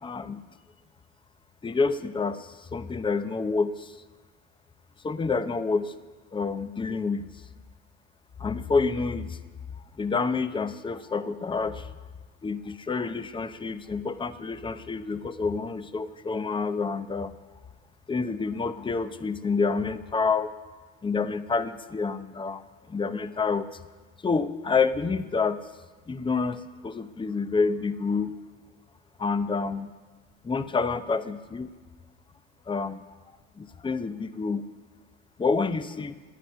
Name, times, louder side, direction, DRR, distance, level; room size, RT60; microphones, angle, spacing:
voice 1, 0.0-0.4 1.6-4.0 5.0-5.9 6.3-7.3 8.4-9.4 10.0-11.9 12.4-17.4 18.1-20.5 21.0-22.6 22.9-23.7 24.2-25.6 26.1-28.3 29.2-29.9 30.4-31.7 32.7-33.0 33.6-34.7 35.4-36.1, left 4 dB, 10° left, 11 dB, 0.7 m, -28 dB
25.5 x 9.3 x 5.6 m, 1.4 s
supercardioid pair, 100°, 40 cm